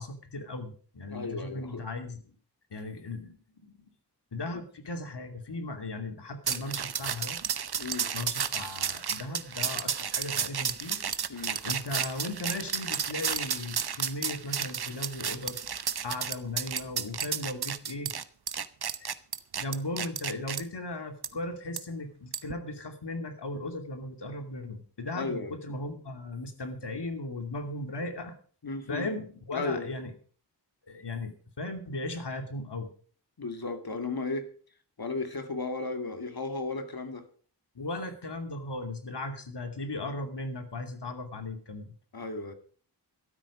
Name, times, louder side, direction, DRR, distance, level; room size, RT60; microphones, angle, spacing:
voice 1, 0.0-2.3 2.7-3.9 4.3-7.4 8.1-11.0 11.6-15.6 16.0-18.2 19.0-19.1 19.6-28.3 28.9-30.1 30.9-32.9 37.7-41.9, left 2 dB, 75° left, 6 dB, 2.7 m, -37 dB
voice 2, 1.1-1.8 7.8-8.1 11.3-11.6 25.1-25.5 28.6-29.1 29.5-29.9 33.4-34.5 35.0-37.2 42.1-42.5, left 3 dB, 60° left, 7 dB, 2.4 m, -34 dB
sound 1, 6.5-20.6 21.2-21.3 21.8-21.9 22.3-22.5, right 7 dB, 65° right, 0.9 m, -32 dB
13.0 x 12.5 x 5.0 m, 0.44 s
cardioid pair, 50°, 42 cm